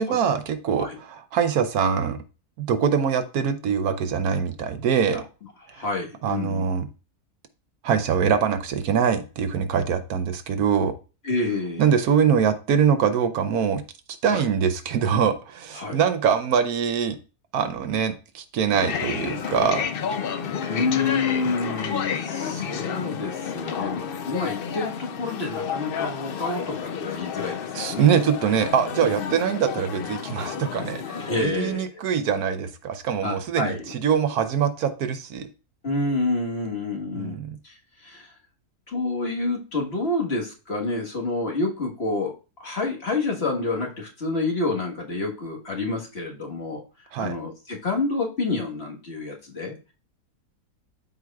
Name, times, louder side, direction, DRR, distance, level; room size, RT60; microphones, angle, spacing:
voice 1, 0.0-2.2 2.6-5.2 6.2-6.9 7.8-10.9 11.8-13.8 14.2-17.2 17.5-19.8 27.7-35.5 37.1-37.5 47.1-47.4, right 7 dB, 70° right, 9 dB, 1.2 m, -23 dB
voice 2, 5.7-6.6 11.2-11.9 14.3-14.5 15.7-16.0 20.7-28.1 29.0-29.4 31.2-31.9 33.2-33.9 35.8-37.4 37.6-38.3 38.9-42.3 42.6-46.8 47.2-49.9, left 3 dB, 40° left, 0 dB, 1.6 m, -28 dB
sound 1, 18.7-31.4, left 7 dB, 75° left, 0.5 m, -31 dB
12.5 x 4.6 x 2.3 m, 0.33 s
omnidirectional pair, 1.7 m